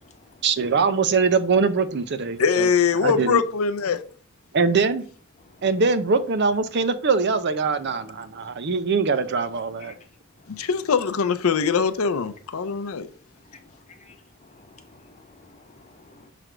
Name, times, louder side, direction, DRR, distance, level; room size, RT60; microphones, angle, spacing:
voice 1, 0.4-2.7 3.0-3.4 4.5-5.0 5.6-9.9, right 4 dB, 55° right, 0.6 m, -22 dB
voice 2, 2.4-4.0 10.5-13.1, left 6 dB, 75° left, 0.5 m, -22 dB
voice 3, 14.4-16.3, left 3 dB, 35° left, 0.9 m, -51 dB
6.1 x 3.3 x 5.0 m
head